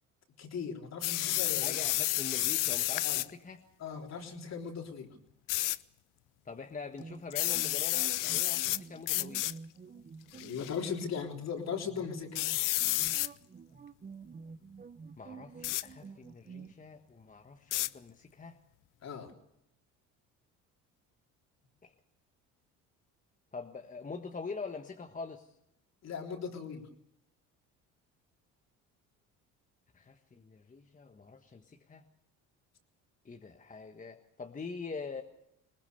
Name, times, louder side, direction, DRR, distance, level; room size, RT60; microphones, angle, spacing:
voice 1, 0.4-1.8 3.0-3.2 3.8-5.2 10.4-12.4 19.0-19.3 26.0-26.9, left 6 dB, 50° left, 3 dB, 3.7 m, -38 dB
sound 1, 1.0-3.3 5.5-5.8 7.3-8.8 9.1-9.5 10.3-10.7 12.4-13.3 15.6-15.9 17.7-17.9, left 18 dB, 70° left, 0.7 m, -30 dB
voice 2, 1.5-3.6 6.4-9.5 15.2-18.6 21.8-21.9 23.5-25.5 29.9-32.0 33.2-35.2, left 4 dB, 25° left, 4 dB, 1.5 m, -44 dB
sound 2, 7.0-16.7, right 5 dB, 25° right, 1.0 m, -49 dB
21.0 x 19.5 x 6.9 m, 0.80 s
supercardioid pair, 90°, 34 cm